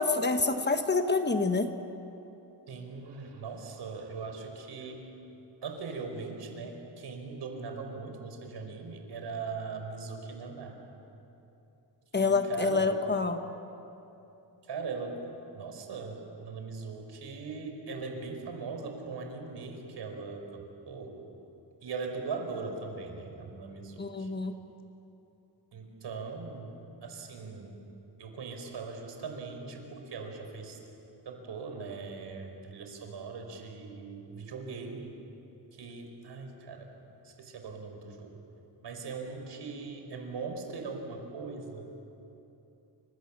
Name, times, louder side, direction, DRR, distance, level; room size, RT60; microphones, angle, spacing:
voice 1, 0.0-1.7 12.1-13.4 24.0-24.5, left 4 dB, 25° left, 7 dB, 1.2 m, -27 dB
voice 2, 2.7-5.0 5.6-10.8 12.1-13.0 14.7-15.2 15.5-21.2 21.8-24.3 25.7-26.7 27.0-27.8 28.2-30.8 31.2-35.1 35.7-36.9 37.2-38.4 38.8-41.9, right 4 dB, 70° right, 4 dB, 4.8 m, -40 dB
29.5 x 26.5 x 7.4 m, 2.9 s
wide cardioid pair, 150°, 43 cm